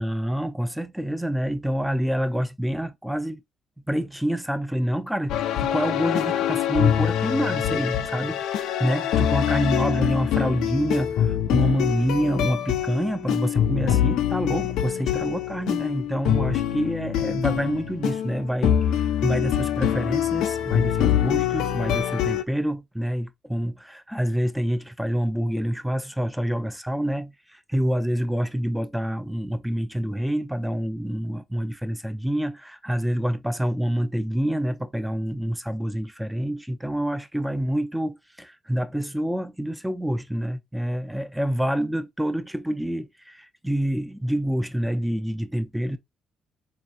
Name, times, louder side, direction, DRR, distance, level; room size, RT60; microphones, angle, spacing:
voice 1, 0.0-3.4 3.9-46.0, equal, 5° right, 0.5 m, -27 dB
sound 1, 5.3-22.4, left 10 dB, 90° left, 0.5 m, -24 dB
4.4 x 2.9 x 2.5 m
cardioid pair, 90°, 0 cm